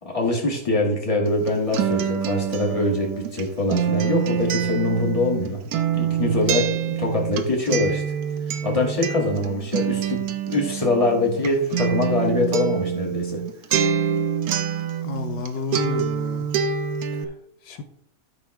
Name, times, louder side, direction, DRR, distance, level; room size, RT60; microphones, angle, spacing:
voice 1, 0.0-5.7 5.9-8.0 8.6-13.4, left 2 dB, 20° left, 2.1 m, -23 dB
Acoustic guitar, 1.3-15.5 15.7-17.2, right 8 dB, 70° right, 1.2 m, -26 dB
voice 2, 15.0-16.5 17.6-17.8, left 5 dB, 85° left, 1.5 m, -31 dB
12.5 x 5.4 x 3.3 m
omnidirectional pair, 1.8 m